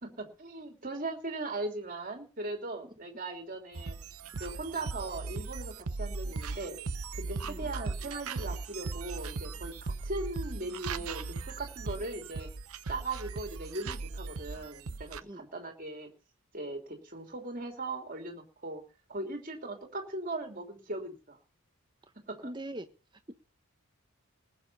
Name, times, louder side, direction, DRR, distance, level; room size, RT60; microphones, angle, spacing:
voice 1, 0.0-4.0 4.4-6.8 7.1-12.5 12.9-16.1 16.5-18.8 19.1-21.4 22.3-22.5, right 2 dB, 40° right, 3 dB, 3.1 m, -39 dB
sound 1, 3.7-15.2, right 4 dB, 80° right, 0.8 m, -38 dB
voice 2, 22.4-22.9, right 1 dB, 20° right, 8 dB, 1.1 m, -41 dB
20.0 x 7.6 x 5.5 m, 0.36 s
head